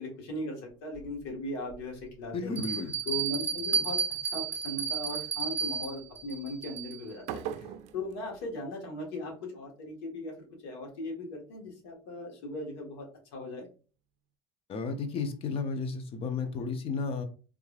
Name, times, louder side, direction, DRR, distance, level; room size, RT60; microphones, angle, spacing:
voice 1, 0.0-2.6 3.0-4.0 4.3-13.7, left 1 dB, 80° left, 1.6 m, -38 dB
Bell, 0.9-1.0 1.7-1.8 2.6-7.1, right 6 dB, 10° right, 1.5 m, -32 dB
voice 2, 2.3-2.9 14.7-17.2, left 4 dB, 45° left, 0.8 m, -33 dB
sound 1, 7.2-9.3, right 10 dB, 60° right, 0.4 m, -41 dB
3.5 x 3.1 x 2.4 m
supercardioid pair, 95°, 14 cm